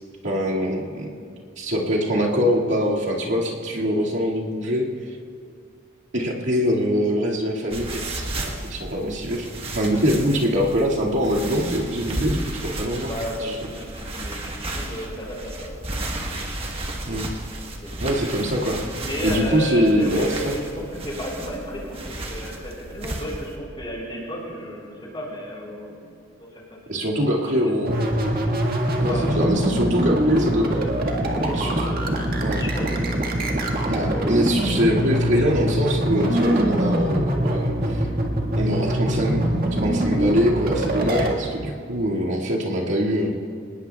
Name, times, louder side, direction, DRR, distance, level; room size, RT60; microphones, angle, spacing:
voice 1, 0.2-1.1 1.6-4.9 6.1-13.1 13.4-13.6 17.1-17.3 18.0-18.8 19.2-20.5 26.9-28.1 29.0-30.6 31.4-31.7 32.4-32.6 33.9-38.1 38.5-39.5 39.8-43.4, equal, 65° right, -4 dB, 2.2 m, -23 dB
sound 1, 7.7-23.6, right 1 dB, 30° right, 1.4 m, -33 dB
voice 2, 13.0-16.6 17.8-18.1 18.9-26.0 26.4-27.8 29.1-30.5 31.2-33.2 34.6-35.1, equal, 25° left, -3 dB, 4.7 m, -34 dB
sound 2, 27.9-41.4, right 1 dB, 45° right, 1.8 m, -23 dB
26.5 x 19.5 x 2.4 m, 2.2 s
head